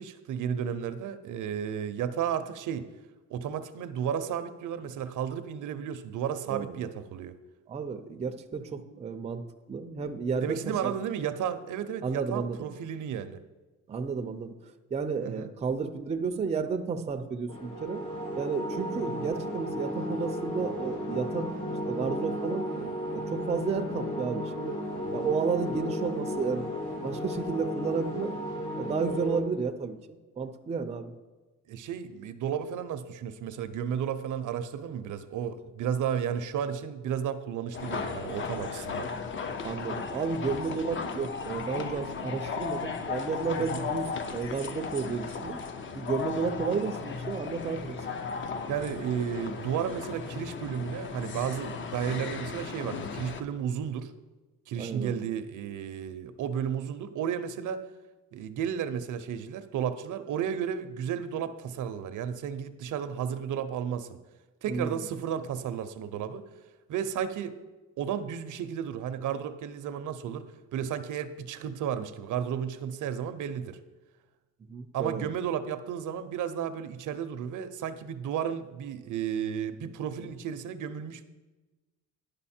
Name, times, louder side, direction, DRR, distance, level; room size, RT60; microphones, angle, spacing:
voice 1, 0.0-2.9 3.3-7.4 10.4-13.4 15.2-15.5 19.1-19.3 25.1-25.3 31.7-39.1 43.6-43.9 48.7-54.1 54.7-57.8 58.3-64.2 64.6-66.4 66.9-67.5 68.0-73.8 74.9-81.2, right 8 dB, 65° right, 11 dB, 0.6 m, -33 dB
voice 2, 6.5-6.8 7.7-9.4 9.7-11.0 12.0-12.7 13.9-14.5 14.9-18.0 18.4-21.5 21.8-24.8 25.1-28.3 28.8-31.1 39.6-45.6 45.9-48.0 54.8-55.2 64.7-65.0 74.7-75.3, right 5 dB, 20° right, 7 dB, 0.4 m, -32 dB
sound 1, 17.5-29.4, equal, 60° left, 2.1 m, -34 dB
sound 2, 37.7-53.4, left 5 dB, 35° left, 0.6 m, -36 dB
10.5 x 5.2 x 4.3 m, 1.2 s
cardioid pair, 125°, 33 cm